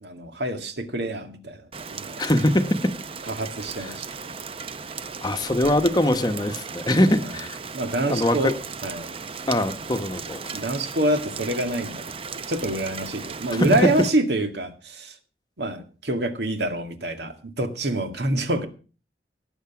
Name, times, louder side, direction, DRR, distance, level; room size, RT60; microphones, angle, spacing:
voice 1, 0.0-1.6 1.9-2.2 3.3-4.1 7.7-8.6 8.8-9.1 10.5-15.1 15.6-18.7, right 1 dB, 75° right, 7 dB, 2.0 m, -26 dB
Rain, 1.7-14.1, right 5 dB, 30° right, 0.6 m, -36 dB
voice 2, 2.2-2.9 3.8-4.0 5.2-7.6 8.1-8.5 9.5-10.5 13.5-13.7, left 1 dB, 25° left, 8 dB, 1.0 m, -22 dB
18.0 x 8.1 x 6.0 m, 0.37 s
head